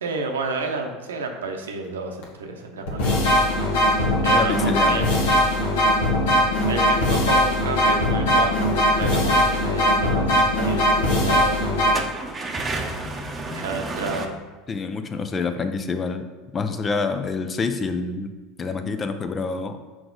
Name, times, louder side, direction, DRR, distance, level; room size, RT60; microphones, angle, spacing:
voice 1, 0.0-3.2 3.8-5.0 6.7-11.7 13.5-14.3, right 3 dB, 80° right, 4 dB, 0.7 m, -31 dB
sound 1, 2.2-2.3 2.9-11.9, left 1 dB, 70° left, 1.2 m, -20 dB
voice 2, 4.3-5.1 14.7-16.3 16.5-18.3 18.6-19.8, left 4 dB, 30° left, 9 dB, 0.6 m, -27 dB
sound 2, 9.1-9.3 10.0-10.1 10.4-10.5 10.9-11.0 11.8-14.3, right 2 dB, 20° right, 0.8 m, -30 dB
6.2 x 4.8 x 3.9 m, 1.3 s
hypercardioid pair, 75°, 0 cm